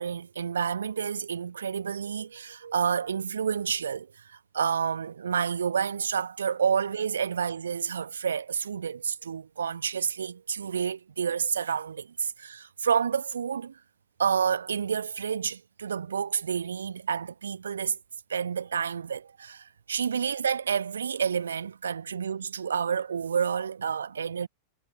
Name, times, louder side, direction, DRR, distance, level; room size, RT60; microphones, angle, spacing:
voice 1, 0.0-13.8 14.2-18.0 18.3-24.5, right 7 dB, 70° right, 1.3 m, -29 dB
figure-of-eight pair, 90°, 0 cm